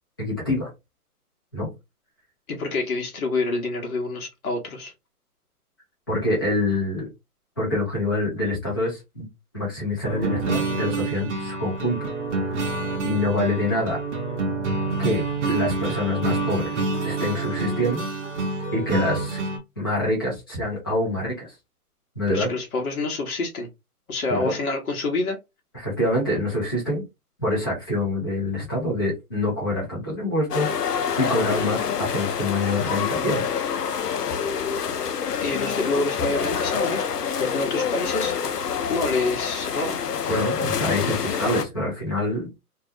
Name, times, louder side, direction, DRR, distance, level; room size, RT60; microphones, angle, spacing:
voice 1, 0.2-0.7 1.5-1.7 6.1-7.1 7.6-9.3 9.5-12.0 13.0-14.0 15.0-16.8 17.0-18.0 18.7-19.4 19.8-21.5 22.2-22.5 24.3-24.5 25.7-27.0 27.4-30.7 31.2-33.4 40.3-42.5, left 1 dB, 15° left, 0.5 m, -26 dB
voice 2, 2.5-4.9 22.3-23.7 24.1-25.4 35.4-37.1 37.4-38.3 38.9-40.0, left 3 dB, 65° left, 0.9 m, -27 dB
sound 1, 10.0-19.6, right 3 dB, 50° right, 0.7 m, -27 dB
sound 2, 30.5-41.7, left 7 dB, 90° left, 0.6 m, -27 dB
2.3 x 2.1 x 2.6 m
hypercardioid pair, 150°, 46 cm